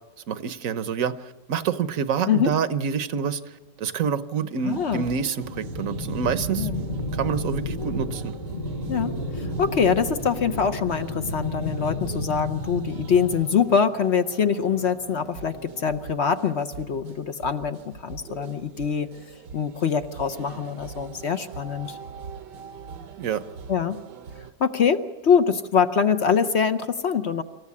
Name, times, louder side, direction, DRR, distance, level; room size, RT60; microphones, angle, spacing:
voice 1, 0.3-6.9 7.1-8.3 23.2-23.4, right 7 dB, 55° right, 13 dB, 1.1 m, -27 dB
voice 2, 4.6-5.0 6.6-6.8 8.9-19.1 19.5-22.0 23.7-24.0 24.6-27.4, left 6 dB, 50° left, 10 dB, 0.8 m, -24 dB
sound 1, 4.6-24.5, right 6 dB, 75° right, 1.4 m, -42 dB
sound 2, 5.4-13.4, left 1 dB, 35° left, 1.5 m, -32 dB
26.5 x 14.5 x 8.4 m, 1.3 s
omnidirectional pair, 1.9 m